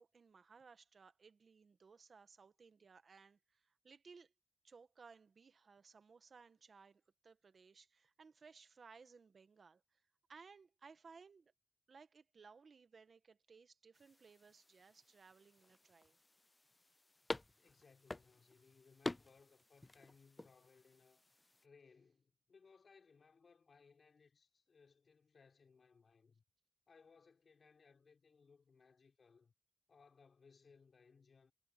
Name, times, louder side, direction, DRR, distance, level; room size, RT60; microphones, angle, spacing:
voice 1, 0.0-4.3 4.6-10.0 10.3-11.5 11.9-16.2, right 5 dB, 60° right, 1.2 m, -62 dB
sound 1, 13.9-21.7, left 2 dB, 25° left, 0.4 m, -50 dB
voice 2, 17.6-21.2 21.6-26.4 26.9-29.5 29.9-31.5, left 5 dB, 60° left, 5.5 m, -67 dB
wide cardioid pair, 90°, 0 cm